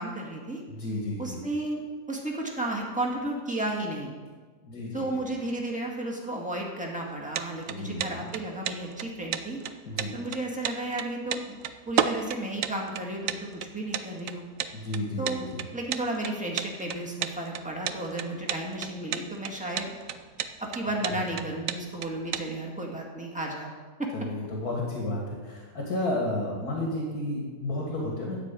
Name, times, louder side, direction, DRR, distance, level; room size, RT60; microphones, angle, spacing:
voice 1, 0.0-0.6 1.2-4.1 4.9-9.6 10.1-11.6 11.9-14.4 15.2-15.5 15.7-20.0 20.6-23.7 24.0-24.1, right 1 dB, 5° right, -2 dB, 1.8 m, -33 dB
voice 2, 0.7-1.4 4.6-5.2 7.7-8.2 9.9-10.1 14.7-15.6 21.1-21.3 24.1-28.4, left 1 dB, 80° left, -2 dB, 2.4 m, -32 dB
sound 1, 7.1-22.5, right 9 dB, 65° right, 1.0 m, -32 dB
13.0 x 5.0 x 8.4 m, 1.5 s
omnidirectional pair, 1.6 m